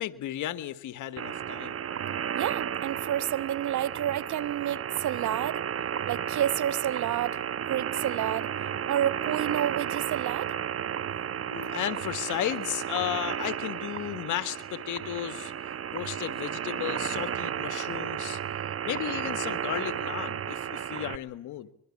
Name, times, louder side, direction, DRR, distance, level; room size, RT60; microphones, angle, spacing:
voice 1, 0.0-1.9 11.5-15.5 15.9-18.4 18.8-21.7, left 13 dB, 85° left, 1.7 m, -34 dB
sound 1, 1.2-21.2, right 9 dB, 50° right, 1.0 m, -33 dB
voice 2, 2.3-5.6 6.1-8.5 8.9-10.5, right 11 dB, 75° right, 1.1 m, -30 dB
25.0 x 22.5 x 8.6 m
cardioid pair, 90°, 30 cm